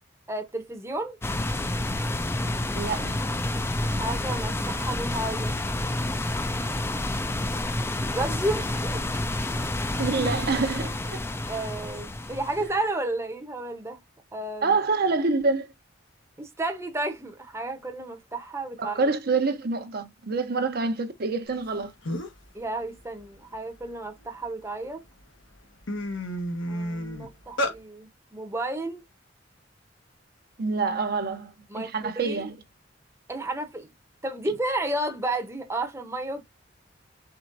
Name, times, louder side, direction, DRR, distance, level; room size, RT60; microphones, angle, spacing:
voice 1, 0.3-1.2 4.0-5.5 7.5-7.6 7.9-9.0 11.5-14.0 14.3-14.7 16.4-19.0 22.5-25.0 26.7-29.0 31.7-32.5 33.3-33.9 34.2-36.4, right 2 dB, 15° right, 0.8 m, -32 dB
sound 1, 1.2-12.8, left 1 dB, 15° left, 0.4 m, -29 dB
voice 2, 2.7-3.2 10.0-11.2 14.6-15.7 18.8-21.9 30.6-32.6, right 4 dB, 55° right, 0.7 m, -26 dB
sound 2, 21.7-21.8 22.0-22.5 22.9-24.5 25.1-25.2 25.5-27.8, equal, 85° left, 1.3 m, -31 dB
4.5 x 4.2 x 2.5 m
head